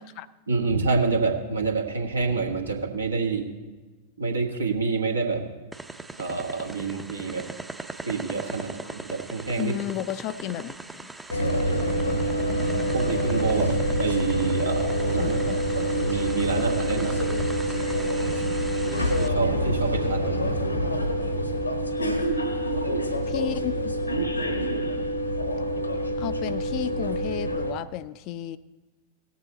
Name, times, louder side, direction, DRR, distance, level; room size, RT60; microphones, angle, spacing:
voice 1, 0.5-3.5 4.2-5.4 6.2-7.4 8.1-9.7 11.5-11.6 12.9-13.7 14.0-17.4 19.2-20.5, right 4 dB, 75° right, 3 dB, 1.3 m, -27 dB
sound 1, 5.7-19.3, right 2 dB, 5° right, 0.6 m, -40 dB
voice 2, 9.6-11.1 15.2-15.6 18.8-19.0 23.3-24.0 26.2-28.6, left 12 dB, 40° left, 15 dB, 0.4 m, -33 dB
sound 2, 11.3-27.7, equal, 85° left, 1.2 m, -26 dB
18.0 x 7.5 x 4.2 m, 1.3 s
figure-of-eight pair, 90°, 0 cm